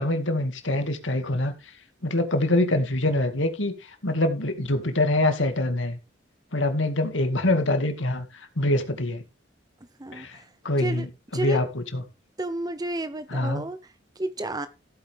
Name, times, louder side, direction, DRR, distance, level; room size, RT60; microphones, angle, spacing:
voice 1, 0.0-1.5 2.0-3.7 4.0-6.0 6.5-8.3 8.6-9.2 10.1-10.4 10.6-12.0 13.3-13.6, left 1 dB, 85° left, 7 dB, 2.2 m, -24 dB
voice 2, 10.0-10.5 10.8-11.1 11.3-11.6 12.4-14.7, right 1 dB, 20° right, 12 dB, 0.8 m, -31 dB
15.0 x 8.7 x 3.5 m, 0.28 s
head